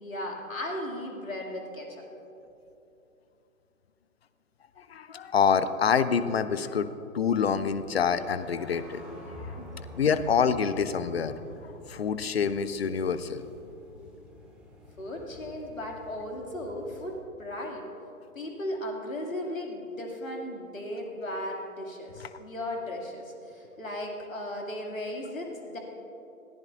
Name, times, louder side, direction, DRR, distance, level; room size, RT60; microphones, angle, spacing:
voice 1, 0.0-2.0 9.6-9.7 15.0-17.9 18.3-25.8, left 1 dB, 70° left, 0 dB, 2.5 m, -36 dB
voice 2, 4.8-9.0 9.4-9.6 9.9-11.3 11.9-13.4, left 6 dB, 45° left, 13 dB, 0.6 m, -26 dB
sound 1, 7.4-17.2, left 1 dB, ahead, 0.8 m, -47 dB
19.5 x 14.5 x 2.5 m, 3.0 s
figure-of-eight pair, 125°, 42 cm